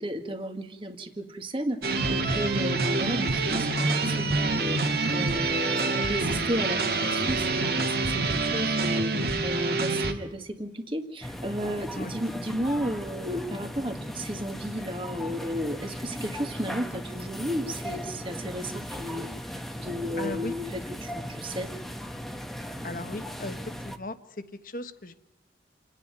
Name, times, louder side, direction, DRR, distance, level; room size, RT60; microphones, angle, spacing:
voice 1, 0.0-19.3 19.8-21.8, equal, 30° right, 6 dB, 1.7 m, -33 dB
sound 1, 1.8-10.1, right 3 dB, 60° right, 2.1 m, -26 dB
sound 2, 11.2-24.0, equal, ahead, 1.0 m, -37 dB
voice 2, 20.2-20.5 22.8-23.6 23.8-24.2 24.6-25.1, left 2 dB, 50° left, 10 dB, 1.3 m, -36 dB
28.5 x 9.9 x 9.4 m, 1.0 s
head